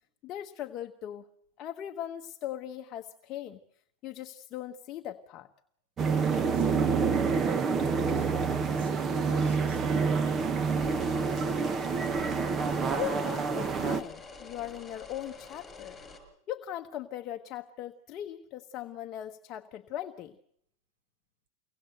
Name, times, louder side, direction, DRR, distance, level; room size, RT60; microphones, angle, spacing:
voice 1, 0.2-1.3 1.6-3.6 4.0-5.5 12.9-16.0 16.5-20.4, left 11 dB, 30° left, 1.2 m, -39 dB
sound 1, 6.0-14.0, right 5 dB, 20° right, 1.1 m, -27 dB
voice 2, 6.5-7.1 7.6-8.3 8.8-12.0, right 6 dB, 70° right, 6.9 m, -51 dB
sound 2, 10.7-16.2, left 3 dB, 10° left, 6.0 m, -47 dB
24.5 x 18.0 x 7.9 m
supercardioid pair, 165°, 0 cm